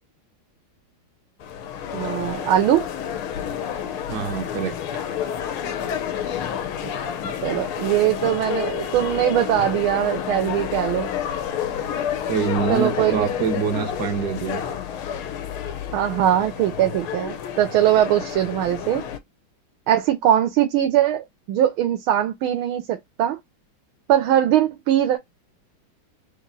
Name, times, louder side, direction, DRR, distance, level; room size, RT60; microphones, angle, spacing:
sound 1, 1.4-19.2, left 8 dB, 85° left, 1.6 m, -29 dB
voice 1, 1.9-2.8 6.8-6.9 7.2-11.1 12.7-13.3 15.9-19.0 19.9-23.4 24.1-25.2, right 11 dB, 80° right, 1.5 m, -21 dB
voice 2, 4.1-4.8 12.3-14.6, right 7 dB, 60° right, 1.5 m, -25 dB
4.2 x 3.0 x 3.9 m
omnidirectional pair, 2.3 m